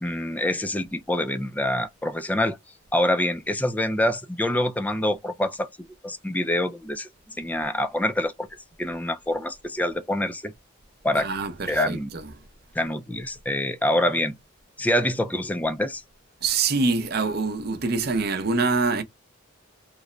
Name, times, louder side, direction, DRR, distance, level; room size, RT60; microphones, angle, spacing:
voice 1, 0.0-2.6 2.9-8.5 8.8-10.5 11.0-11.3 11.7-12.1 12.8-14.4 14.8-16.0, left 1 dB, 10° left, 0.4 m, -26 dB
voice 2, 11.1-12.4 16.4-19.0, right 4 dB, 50° right, 0.6 m, -25 dB
3.1 x 2.1 x 3.8 m
head